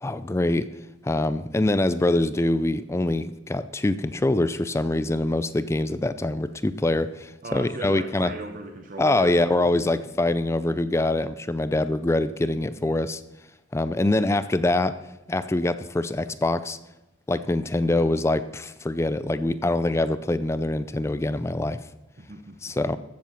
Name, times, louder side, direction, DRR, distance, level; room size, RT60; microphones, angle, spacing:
voice 1, 0.0-0.7 1.0-8.3 9.0-13.2 13.7-15.0 15.3-16.8 17.3-21.8 22.6-23.0, left 2 dB, 15° left, 14 dB, 0.4 m, -24 dB
voice 2, 7.4-9.9 22.2-22.8, right 2 dB, 50° right, 5 dB, 0.9 m, -38 dB
14.5 x 7.5 x 5.8 m, 0.93 s
head